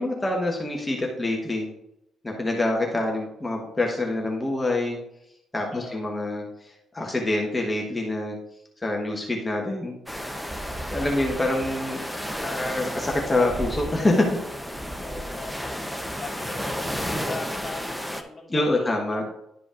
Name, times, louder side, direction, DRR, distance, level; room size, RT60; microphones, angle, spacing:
voice 1, 0.0-1.7 2.2-5.0 5.5-8.4 8.8-10.0 10.8-12.0 12.4-14.4 15.5-15.8 18.5-19.2, left 2 dB, 20° left, 0 dB, 1.1 m, -26 dB
voice 2, 5.7-6.0 11.0-12.3 15.0-15.7 16.1-19.3, left 3 dB, 35° left, 0 dB, 1.8 m, -41 dB
sound 1, 10.1-18.2, equal, ahead, 0.7 m, -32 dB
11.5 x 5.0 x 2.5 m, 0.80 s
cardioid pair, 90°, 0 cm